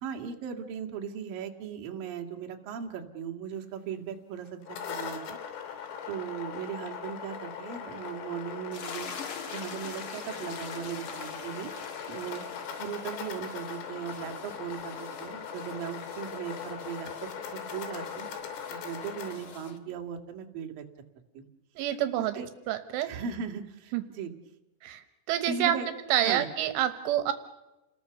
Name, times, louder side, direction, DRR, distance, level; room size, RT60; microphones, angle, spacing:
voice 1, 0.0-5.4 5.8-9.1 9.5-11.7 12.1-18.3 18.7-20.9 21.3-21.5 21.8-22.5 23.0-24.3 25.5-25.9 26.2-26.5, right 7 dB, 55° right, 3 dB, 3.5 m, -38 dB
sound 1, 4.5-19.3, left 7 dB, 85° left, 5.4 m, -40 dB
sound 2, 8.7-19.8, left 5 dB, 70° left, 1.2 m, -44 dB
voice 2, 21.8-22.3 22.7-23.1 23.9-24.0 24.8-25.8 26.1-27.3, right 11 dB, 80° right, 11 dB, 3.6 m, -27 dB
30.0 x 20.5 x 6.9 m, 1.0 s
omnidirectional pair, 5.6 m